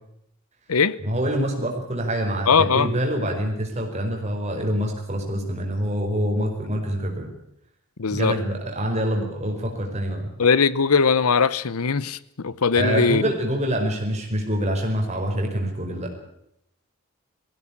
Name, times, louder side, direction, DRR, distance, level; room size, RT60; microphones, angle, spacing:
voice 1, 1.0-7.3 8.1-10.3 12.8-16.1, equal, 30° right, 5.0 m, -25 dB
voice 2, 2.5-2.9 8.0-8.4 10.4-13.2, left 5 dB, 80° left, 0.8 m, -20 dB
20.0 x 16.5 x 8.7 m
head